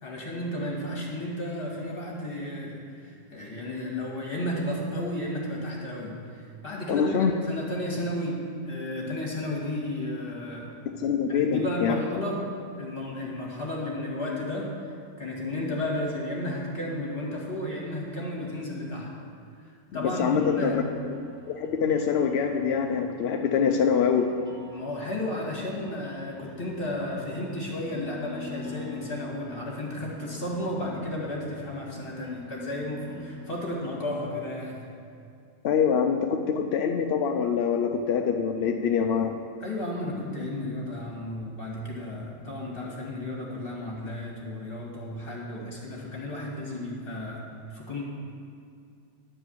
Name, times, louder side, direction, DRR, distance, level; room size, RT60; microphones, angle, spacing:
voice 1, 0.0-10.7 11.3-12.5 12.8-19.2 19.9-20.9 24.7-34.9 39.6-48.0, left 1 dB, 35° left, -2 dB, 2.2 m, -33 dB
voice 2, 6.9-7.3 10.9-11.9 20.0-21.2 21.5-24.3 35.6-39.3, left 7 dB, 65° left, 4 dB, 0.6 m, -25 dB
sound 1, 20.3-34.0, left 3 dB, 10° right, 1.4 m, -45 dB
11.0 x 4.9 x 7.8 m, 2.4 s
omnidirectional pair, 1.6 m